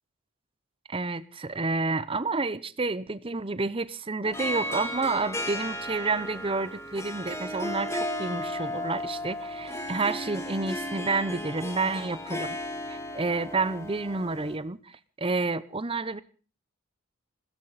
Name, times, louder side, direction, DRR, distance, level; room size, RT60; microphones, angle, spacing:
voice 1, 0.9-12.6 12.9-14.9 15.2-16.2, right 3 dB, 25° right, 16 dB, 0.7 m, -29 dB
Harp, 4.2-14.6, left 1 dB, 15° left, 1.7 m, -35 dB
20.5 x 16.0 x 4.1 m, 0.37 s
head